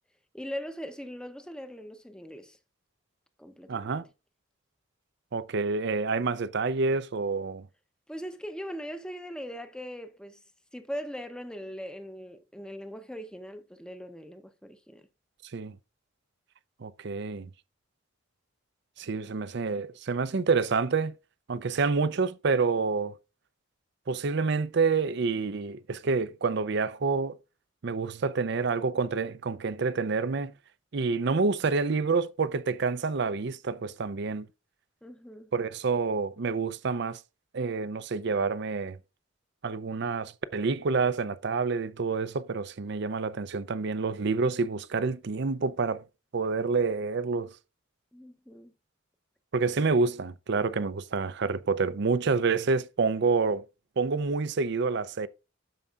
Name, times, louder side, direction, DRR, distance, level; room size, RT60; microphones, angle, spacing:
voice 1, 0.3-2.6 3.4-3.9 8.1-10.4 10.7-15.0 35.0-35.5 48.1-48.7, equal, 5° left, 0.7 m, -40 dB
voice 2, 3.7-4.0 5.3-7.7 15.5-15.8 16.8-17.5 19.0-21.1 21.5-23.1 24.1-27.4 27.8-30.5 30.9-34.5 35.5-37.2 37.5-39.0 39.6-46.0 46.3-47.5 49.5-53.6 54.0-55.3, right 4 dB, 55° right, 0.5 m, -28 dB
12.5 x 4.8 x 2.4 m
head